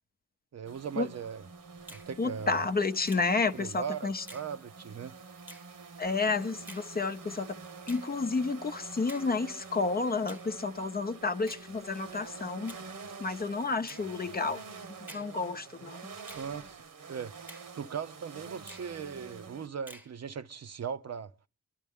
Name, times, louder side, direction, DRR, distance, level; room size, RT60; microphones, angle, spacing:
voice 1, 0.5-1.5 1.9-2.6 3.5-5.1 16.3-16.8 17.1-21.3, right 7 dB, 55° right, 0.7 m, -39 dB
sound 1, 0.7-19.7, right 5 dB, 85° right, 1.5 m, -48 dB
Finger snapping, 1.9-2.1 3.1-3.3 4.3-4.5 5.5-5.7 6.7-6.9 7.9-8.1 9.1-9.3 10.3-10.5 11.5-11.7 12.7-12.9 13.9-14.1 15.1-15.3 16.3-16.5 17.5-17.7 18.7-18.9 19.9-20.1, equal, 5° right, 0.9 m, -48 dB
voice 2, 2.2-4.2 6.0-7.5 7.9-12.8 13.2-14.6 15.1-16.0, left 4 dB, 30° left, 0.7 m, -31 dB
25.5 x 11.5 x 3.6 m
wide cardioid pair, 135°, 31 cm